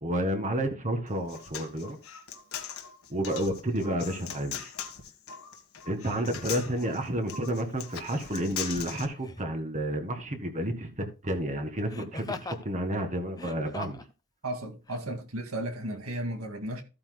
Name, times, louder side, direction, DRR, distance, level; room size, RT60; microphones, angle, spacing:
voice 1, 0.0-2.0 3.1-4.7 5.9-14.0, right 1 dB, 35° right, 1.8 m, -31 dB
Human voice, 1.1-9.0, left 8 dB, 70° left, 1.5 m, -40 dB
Laughter, 7.7-7.9 9.2-9.6 11.9-12.7 13.3-14.1 14.9-15.0, left 3 dB, 15° left, 0.8 m, -40 dB
voice 2, 14.4-16.8, right 1 dB, 75° right, 2.1 m, -34 dB
14.5 x 8.7 x 2.2 m
head